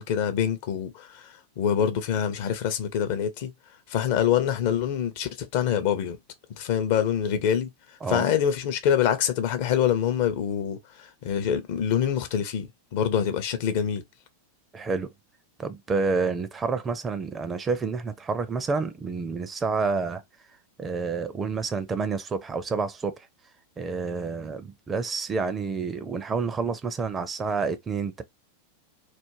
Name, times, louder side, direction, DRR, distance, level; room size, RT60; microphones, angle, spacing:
voice 1, 0.0-3.5 3.9-6.2 6.5-7.7 8.1-14.0, left 9 dB, 50° left, 0.5 m, -25 dB
voice 2, 14.7-15.1 15.6-20.2 20.8-23.3 23.8-28.2, right 4 dB, 20° right, 0.4 m, -29 dB
2.4 x 2.1 x 3.0 m
figure-of-eight pair, 90°, 0 cm